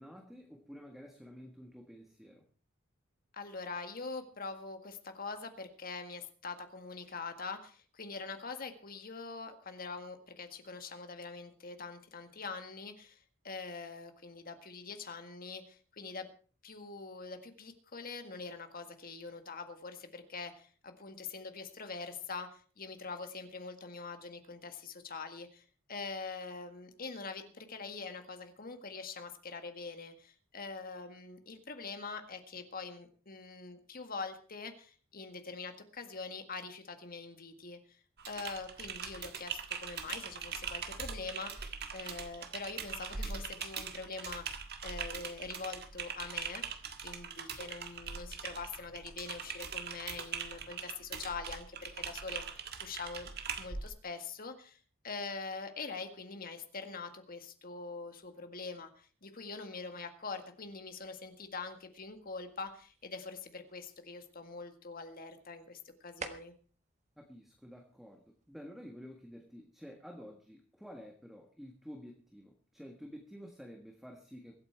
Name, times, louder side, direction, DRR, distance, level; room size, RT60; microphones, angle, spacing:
voice 1, 0.0-2.5 67.2-74.6, equal, ahead, 2 dB, 1.6 m, -50 dB
voice 2, 3.3-16.3 16.6-37.8 38.3-46.6 47.0-53.3 53.6-54.8 55.0-66.5, left 4 dB, 45° left, 7 dB, 1.8 m, -44 dB
Typing, 38.2-53.9, right 6 dB, 50° right, 1.6 m, -42 dB
sound 1, 60.6-68.6, right 4 dB, 30° right, 1.5 m, -54 dB
23.0 x 8.8 x 4.5 m, 0.42 s
head